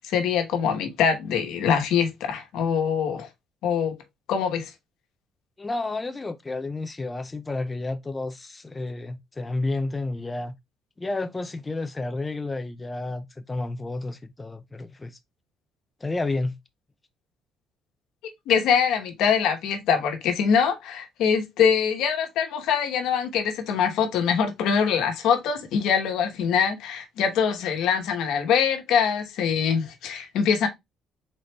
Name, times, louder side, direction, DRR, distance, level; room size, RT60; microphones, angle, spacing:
voice 1, 0.0-3.3 3.6-3.9 4.3-4.7 18.5-30.7, left 7 dB, 80° left, 1.1 m, -23 dB
voice 2, 5.6-10.5 11.0-15.2 16.0-16.6, left 2 dB, 15° left, 0.4 m, -31 dB
3.9 x 3.1 x 3.2 m
cardioid pair, 145°, 0 cm